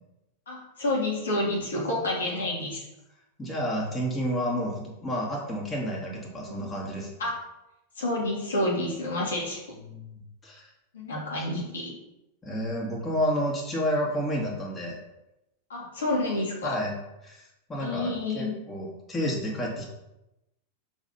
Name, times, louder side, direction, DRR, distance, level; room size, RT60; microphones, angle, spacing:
voice 1, 0.5-2.8 6.5-6.6 7.2-7.3 8.0-9.6 10.9-11.9 15.7-16.8 17.8-18.5, left 1 dB, 65° left, -3 dB, 2.0 m, -29 dB
voice 2, 1.7-2.8 3.4-7.1 9.9-10.0 10.4-10.7 12.4-15.0 16.6-16.9 17.2-17.4 17.7-19.8, equal, 15° left, -2 dB, 2.3 m, -30 dB
7.1 x 4.1 x 5.6 m, 0.91 s
figure-of-eight pair, 90°, 0 cm